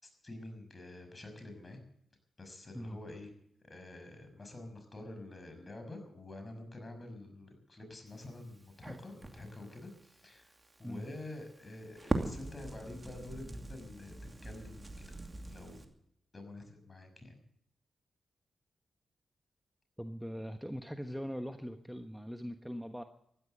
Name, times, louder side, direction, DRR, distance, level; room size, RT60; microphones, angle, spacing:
voice 1, 0.0-1.8 2.4-3.3 3.6-10.5 10.8-15.0 15.5-15.9 16.3-17.4, left 2 dB, 35° left, 6 dB, 6.2 m, -48 dB
Crackle, 8.1-15.8, right 2 dB, 30° right, 2.6 m, -42 dB
voice 2, 20.0-23.0, equal, ahead, 7 dB, 1.3 m, -41 dB
15.0 x 12.0 x 7.9 m, 0.74 s
supercardioid pair, 40°, 0 cm